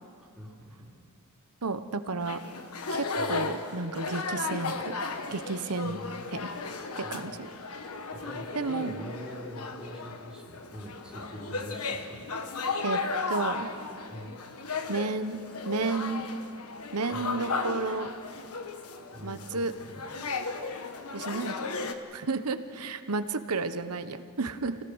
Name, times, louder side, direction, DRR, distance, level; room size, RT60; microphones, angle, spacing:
voice 1, 0.2-0.9 3.1-3.6 5.8-6.3 7.0-7.4 8.1-12.3 14.1-14.5 17.1-17.4 19.1-20.0 22.1-22.2, equal, 5° right, -4 dB, 3.1 m, -44 dB
voice 2, 1.6-2.4 2.9-4.9 5.3-6.0 6.3-6.5 7.0-7.5 8.5-8.9 12.8-13.0 13.3-13.7 14.9-15.4 15.6-16.3 16.9-18.1 19.2-19.7 21.1-21.5 21.8-24.8, right 3 dB, 90° right, 10 dB, 1.1 m, -32 dB
sound 1, 2.2-21.9, left 4 dB, 75° left, 1.4 m, -35 dB
28.5 x 17.5 x 6.4 m, 2.5 s
head